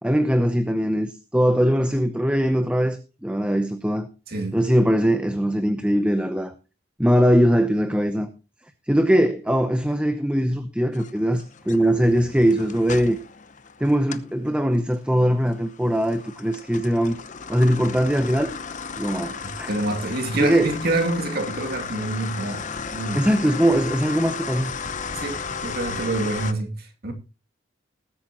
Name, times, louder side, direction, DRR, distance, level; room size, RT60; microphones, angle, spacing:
voice 1, 0.0-4.1 4.5-6.5 7.0-8.3 8.9-13.2 13.8-17.2 17.5-18.5 19.0-19.7 20.3-20.7 23.1-24.7, equal, 5° right, 0.7 m, -21 dB
voice 2, 4.3-4.6 19.4-23.2 25.1-27.1, right 2 dB, 55° right, 2.5 m, -27 dB
sound 1, 10.9-14.3 14.7-26.5, left 5 dB, 40° left, 0.8 m, -35 dB
20.0 x 8.6 x 3.0 m
head